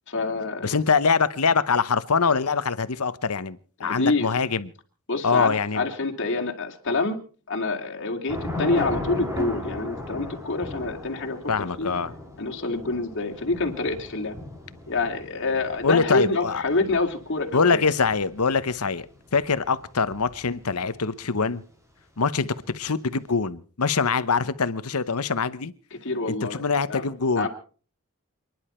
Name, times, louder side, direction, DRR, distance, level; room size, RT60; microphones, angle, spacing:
voice 1, 0.1-0.7 3.8-4.3 5.1-7.2 7.5-11.9 12.4-14.3 14.9-17.8 25.9-26.6 26.9-27.0 27.4-27.5, left 3 dB, 55° left, 2.8 m, -27 dB
voice 2, 0.6-4.7 5.2-5.8 11.5-12.1 15.8-16.6 17.5-19.1 19.3-21.6 22.2-25.7 26.3-27.5, left 5 dB, 85° left, 1.0 m, -24 dB
Thunder / Rain, 8.3-20.8, left 1 dB, 15° right, 4.0 m, -37 dB
28.5 x 11.0 x 4.5 m
head